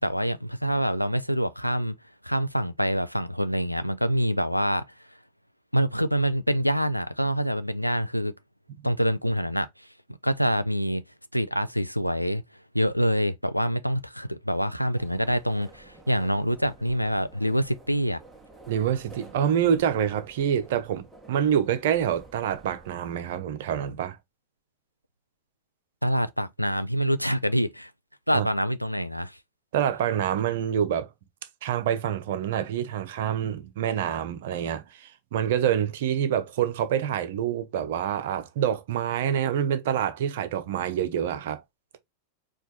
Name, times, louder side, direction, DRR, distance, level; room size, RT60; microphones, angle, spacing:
voice 1, 0.0-2.0 2.2-4.8 5.7-8.3 8.8-9.9 10.2-11.0 11.3-12.4 12.7-18.2 26.0-27.9 28.3-29.4, equal, 90° left, 0.4 m, -26 dB
sound 1, 15.0-22.9, right 2 dB, 5° right, 1.1 m, -51 dB
voice 2, 18.7-24.2 28.3-28.5 29.7-31.1 31.6-41.6, right 9 dB, 55° right, 0.7 m, -26 dB
4.5 x 2.5 x 4.0 m
figure-of-eight pair, 90°, 0 cm